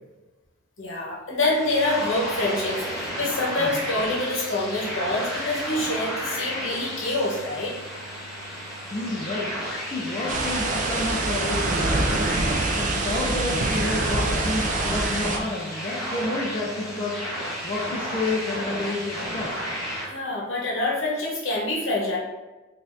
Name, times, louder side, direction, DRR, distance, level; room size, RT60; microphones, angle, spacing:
voice 1, 0.8-7.7 20.1-22.2, left 2 dB, 70° left, -3 dB, 1.0 m, -26 dB
sound 1, 1.5-20.1, equal, ahead, 1.1 m, -32 dB
voice 2, 8.9-9.6 9.9-12.5 12.8-17.2 17.6-19.6, left 2 dB, 30° left, -4 dB, 0.4 m, -30 dB
sound 2, 10.3-15.4, right 2 dB, 40° right, 0.3 m, -26 dB
4.0 x 2.6 x 2.5 m, 1.2 s
head